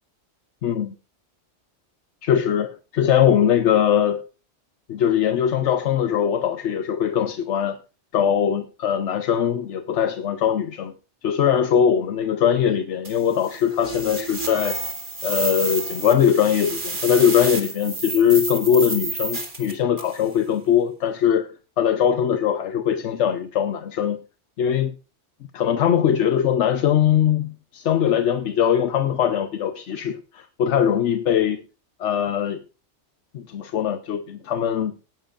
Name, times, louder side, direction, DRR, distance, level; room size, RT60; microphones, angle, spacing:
voice 1, 0.6-0.9 2.2-4.2 4.9-7.8 8.1-10.9 11.2-14.8 15.2-21.5 21.8-24.2 24.6-24.9 25.5-31.6 32.0-32.6 33.3-34.9, left 9 dB, 80° left, 1.0 m, -21 dB
sound 1, 13.0-20.2, right 3 dB, 45° right, 2.5 m, -30 dB
18.5 x 10.5 x 2.5 m
omnidirectional pair, 1.2 m